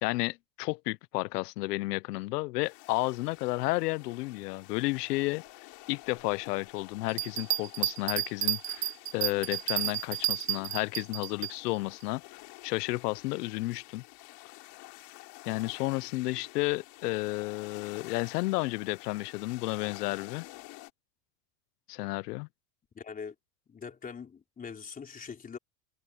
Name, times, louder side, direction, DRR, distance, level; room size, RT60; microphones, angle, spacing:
voice 1, 0.0-5.4 5.9-12.2 12.6-14.0 15.5-20.4 21.9-22.5, left 21 dB, 85° left, 0.7 m, -32 dB
sound 1, 2.6-20.9, left 22 dB, 50° left, 3.5 m, -50 dB
Bell, 7.1-11.5 12.0-12.1, right 13 dB, 35° right, 1.6 m, -31 dB
voice 2, 22.9-23.3 23.7-25.6, left 6 dB, 20° left, 3.7 m, -42 dB
supercardioid pair, 150°, 46 cm